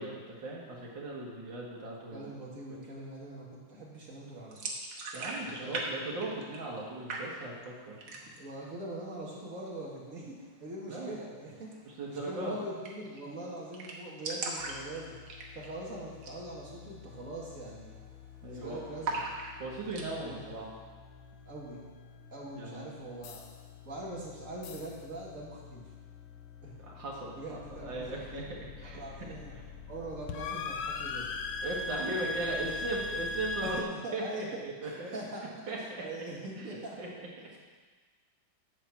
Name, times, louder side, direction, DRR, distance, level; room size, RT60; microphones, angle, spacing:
voice 1, 0.0-2.3 2.7-2.8 5.1-8.0 10.9-11.2 11.9-12.6 18.4-18.8 19.6-20.7 22.6-23.0 26.8-29.3 31.6-33.8 34.1-34.3 34.6-35.2 35.7-36.1 36.6-37.1, right 2 dB, 70° right, -4 dB, 2.5 m, -38 dB
voice 2, 2.1-4.6 5.4-5.9 8.1-15.1 15.5-18.0 18.4-19.2 20.3-20.5 21.5-21.8 22.3-23.4 23.9-25.8 26.6-26.7 27.4-28.5 28.9-29.5 29.9-31.3 33.6-34.5 34.8-35.7 36.0-37.0, right 1 dB, 40° right, -4 dB, 2.3 m, -42 dB
sound 1, 4.5-5.9 6.1-6.8 7.1-7.7 8.0-8.5 8.9-9.0 9.3-9.9 11.6-11.8 12.1-12.2 12.4-12.5 12.8-13.2 13.5-13.6 13.7-15.8 16.1-16.4 16.8-16.9 17.4-17.7 17.9-18.5 19.0-20.1, right 3 dB, 90° right, 2.0 m, -38 dB
sound 2, 14.6-33.8, left 3 dB, 80° left, 1.5 m, -42 dB
9.7 x 4.5 x 7.1 m, 1.4 s
omnidirectional pair, 2.1 m